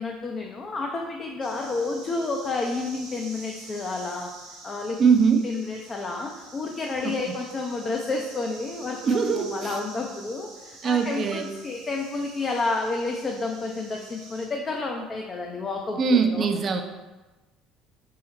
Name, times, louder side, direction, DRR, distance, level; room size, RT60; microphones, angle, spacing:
voice 1, 0.0-4.3 4.6-5.0 5.4-16.7, left 3 dB, 35° left, 1 dB, 0.4 m, -30 dB
sound 1, 1.4-14.5, right 3 dB, 85° right, 0.7 m, -46 dB
voice 2, 5.0-5.4 7.0-7.1 9.1-9.8 10.8-11.4 16.0-16.8, right 5 dB, 45° right, 5 dB, 0.4 m, -21 dB
3.8 x 2.1 x 4.1 m, 1.1 s
hypercardioid pair, 60°, 0 cm